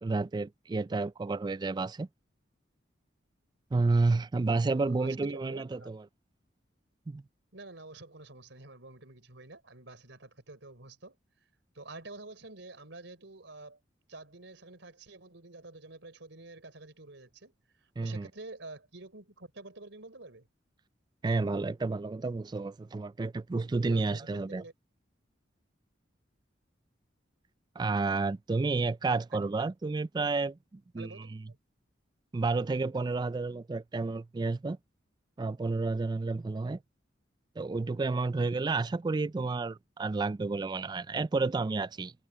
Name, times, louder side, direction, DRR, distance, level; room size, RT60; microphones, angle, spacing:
voice 1, 0.0-2.1 3.7-6.0 7.1-7.2 18.0-18.3 21.2-24.6 27.8-31.1 32.3-34.8 35.4-36.8 37.6-42.1, right 3 dB, 20° right, 0.3 m, -30 dB
voice 2, 4.7-5.9 7.5-11.2 11.7-13.8 14.1-20.5 23.7-24.7 29.3-29.6 31.0-31.6, right 2 dB, 75° right, 3.8 m, -49 dB
head